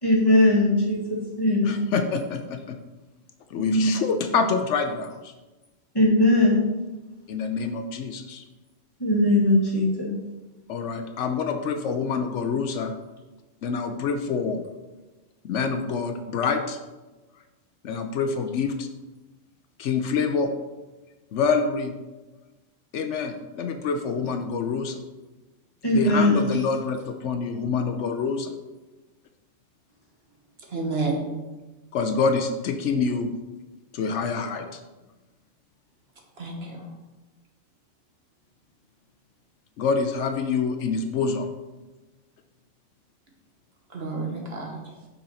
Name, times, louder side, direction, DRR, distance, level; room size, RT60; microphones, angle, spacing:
voice 1, 0.0-1.7 3.5-4.0 5.9-6.6 9.0-10.2 25.8-26.5, left 1 dB, 20° left, 1.8 m, -20 dB
voice 2, 1.7-2.8 3.5-5.3 7.3-8.4 10.7-12.9 13.6-14.6 15.4-16.8 17.8-18.9 19.8-20.5 21.3-21.9 22.9-25.0 25.9-28.5 31.9-33.3 33.9-34.7 39.8-41.5, left 5 dB, 75° left, 0.9 m, -26 dB
voice 3, 30.6-31.3 36.4-36.9 43.9-45.0, right 3 dB, 55° right, 1.4 m, -30 dB
6.2 x 5.8 x 4.2 m
omnidirectional pair, 1.3 m